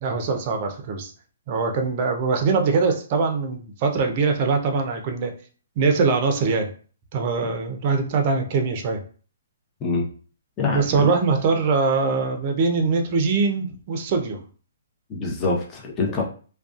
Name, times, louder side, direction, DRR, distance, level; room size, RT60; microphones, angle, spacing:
voice 1, 0.0-1.1 1.5-5.3 5.8-6.7 7.1-9.0 10.7-14.4, right 4 dB, 40° right, 4 dB, 0.5 m, -22 dB
voice 2, 10.6-11.1 15.1-16.2, left 3 dB, 20° left, -1 dB, 0.7 m, -25 dB
2.4 x 2.2 x 2.4 m, 0.40 s
hypercardioid pair, 140°, 0 cm